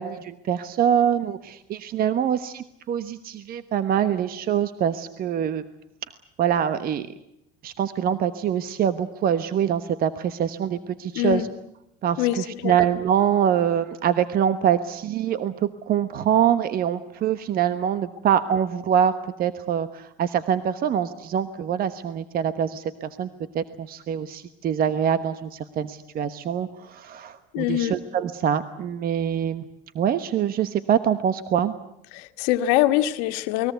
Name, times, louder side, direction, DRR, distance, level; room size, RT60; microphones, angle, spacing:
voice 1, 0.0-5.6 6.4-7.1 7.6-11.5 12.0-23.3 23.5-29.6 29.9-31.7, right 9 dB, 45° right, 12 dB, 1.2 m, -24 dB
voice 2, 11.1-11.5 12.2-12.8 27.5-28.0 32.1-33.7, left 14 dB, 80° left, 9 dB, 1.6 m, -23 dB
29.0 x 21.0 x 8.1 m, 0.80 s
supercardioid pair, 105°, 20 cm